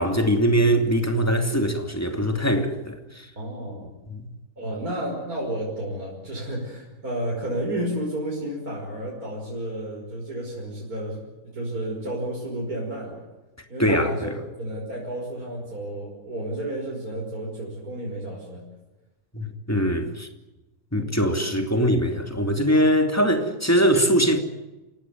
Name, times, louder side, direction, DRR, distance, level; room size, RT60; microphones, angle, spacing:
voice 1, 0.0-3.3 4.1-4.3 13.8-14.3 19.3-20.3 20.9-24.4, equal, 10° left, 2.9 m, -22 dB
voice 2, 3.4-3.9 4.6-11.2 11.5-13.2 13.7-18.6, right 1 dB, 70° right, 6.2 m, -31 dB
28.0 x 17.5 x 9.6 m
omnidirectional pair, 1.6 m